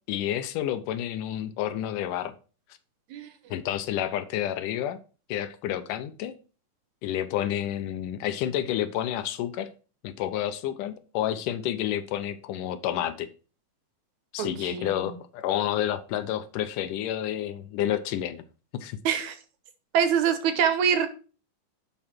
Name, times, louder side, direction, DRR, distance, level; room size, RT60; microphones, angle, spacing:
voice 1, 0.1-2.3 3.5-5.0 5.3-6.4 7.0-9.7 10.0-13.3 14.3-18.4 18.8-19.0, left 11 dB, 80° left, 2.3 m, -29 dB
voice 2, 14.4-14.9 19.1-19.4 19.9-21.1, right 8 dB, 70° right, 2.2 m, -24 dB
11.0 x 5.0 x 4.4 m
omnidirectional pair, 3.8 m